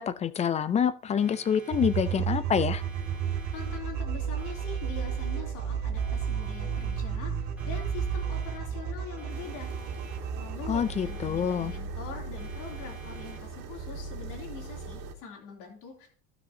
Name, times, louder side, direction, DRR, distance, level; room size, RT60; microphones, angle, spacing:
voice 1, 0.0-2.8 10.7-11.7, left 8 dB, 20° left, 16 dB, 0.4 m, -27 dB
Siren, 1.2-2.5 2.8-4.1 4.4-5.7 6.0-7.3 7.6-8.9 9.2-10.5 10.8-12.1 12.4-13.7, right 2 dB, 5° right, 2.4 m, -52 dB
sound 1, 1.7-10.8, right 7 dB, 50° right, 2.5 m, -32 dB
voice 2, 3.3-9.7 10.3-16.1, left 6 dB, 65° left, 1 dB, 3.0 m, -43 dB
sound 2, 9.3-15.1, right 3 dB, 70° right, 2.2 m, -40 dB
15.5 x 6.1 x 2.7 m, 0.42 s
cardioid pair, 135°, 35 cm